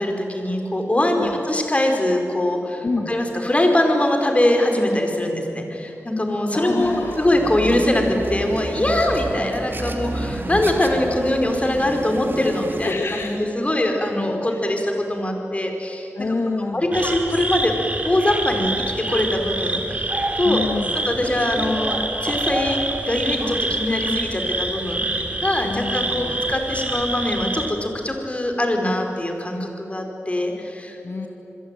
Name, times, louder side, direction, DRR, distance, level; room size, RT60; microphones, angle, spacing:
voice 1, 0.0-13.3 13.5-16.3 16.6-17.7 18.0-20.6 21.1-22.8 23.0-25.0 25.4-31.0, left 1 dB, 25° left, 3 dB, 5.1 m, -22 dB
voice 2, 2.8-3.1 5.8-6.0 6.5-7.3 12.8-13.5 14.5-14.7 16.1-16.9 20.4-21.0 25.6-26.4 31.0-31.3, left 3 dB, 55° left, 2 dB, 2.3 m, -27 dB
sound 1, 6.8-12.9, right 2 dB, 45° right, 2.5 m, -30 dB
sound 2, 16.9-27.7, right 2 dB, 30° right, 3.5 m, -26 dB
28.0 x 21.5 x 9.4 m, 3.0 s
cardioid pair, 60°, 5 cm